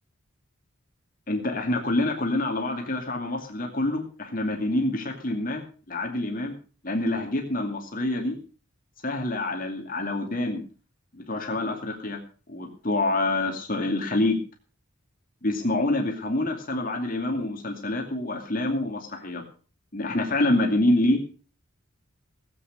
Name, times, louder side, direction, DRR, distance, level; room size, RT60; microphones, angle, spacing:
voice 1, 1.3-5.6 5.9-6.6 6.8-8.4 9.0-10.6 11.1-12.2 12.5-14.4 15.4-19.4 19.9-21.2, left 2 dB, 40° left, 2 dB, 2.5 m, -26 dB
17.5 x 8.8 x 6.6 m, 0.39 s
head